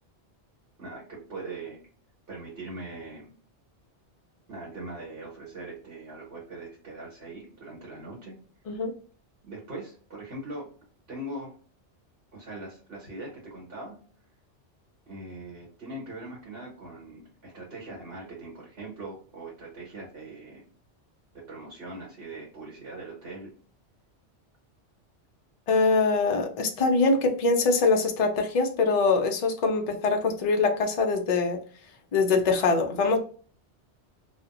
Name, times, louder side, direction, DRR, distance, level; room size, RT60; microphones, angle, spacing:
voice 1, 0.8-1.8 2.3-3.3 4.5-8.4 9.4-10.7 11.1-11.5 12.3-14.0 15.1-20.6 21.3-23.5, right 2 dB, 60° right, -3 dB, 1.5 m, -41 dB
voice 2, 25.7-31.6 32.1-33.2, left 4 dB, 50° left, 3 dB, 0.4 m, -23 dB
2.8 x 2.1 x 2.5 m, 0.43 s
omnidirectional pair, 1.2 m